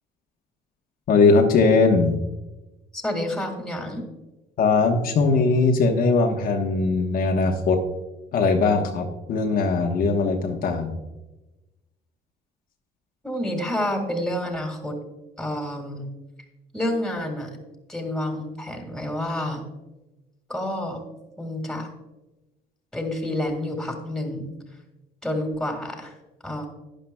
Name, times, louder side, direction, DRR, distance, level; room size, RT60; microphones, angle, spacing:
voice 1, 1.1-2.2 4.6-7.8 8.3-11.0, left 4 dB, 60° left, 2 dB, 1.2 m, -20 dB
voice 2, 2.9-4.0 13.2-15.0 15.4-16.1 16.7-17.6 17.9-19.7 20.5-21.0 21.4-21.9 22.9-24.5 25.2-26.1 26.4-26.7, left 1 dB, 5° left, 3 dB, 2.1 m, -29 dB
11.5 x 10.5 x 2.3 m, 1.1 s
cardioid pair, 110°, 17 cm